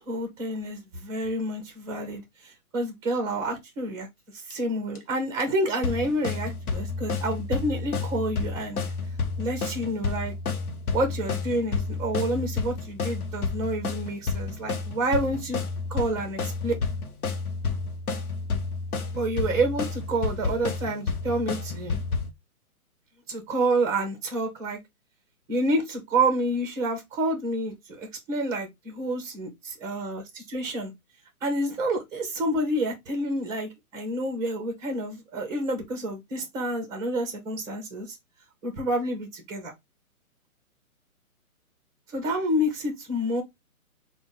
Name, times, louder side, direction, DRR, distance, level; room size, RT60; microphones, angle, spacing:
voice 1, 0.0-4.1 4.3-8.8 9.4-10.3 10.9-15.6 15.9-16.7 19.1-22.0 23.3-24.8 25.5-30.9 31.4-38.1 38.6-39.7 42.1-43.4, right 1 dB, 5° right, 0.7 m, -28 dB
sound 1, 4.5-4.6 4.9-5.0 5.4-5.5 5.8-22.3, left 4 dB, 80° left, 0.8 m, -30 dB
3.7 x 2.2 x 3.8 m
hypercardioid pair, 140°, 43 cm